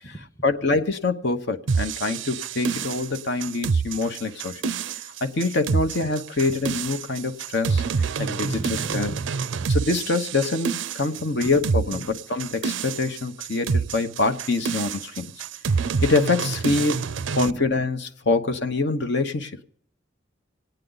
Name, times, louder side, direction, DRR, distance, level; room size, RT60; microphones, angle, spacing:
voice 1, 0.4-4.6 5.2-9.1 9.7-15.3 16.0-17.0 17.3-19.6, left 3 dB, 60° left, 7 dB, 0.9 m, -25 dB
sound 1, 1.7-17.5, right 5 dB, 70° right, 0.4 m, -27 dB
voice 2, 8.4-9.3 11.4-11.5 11.9-12.0 17.3-17.4, right 1 dB, 15° left, 6 dB, 0.8 m, -37 dB
27.0 x 9.1 x 3.9 m, 0.71 s
head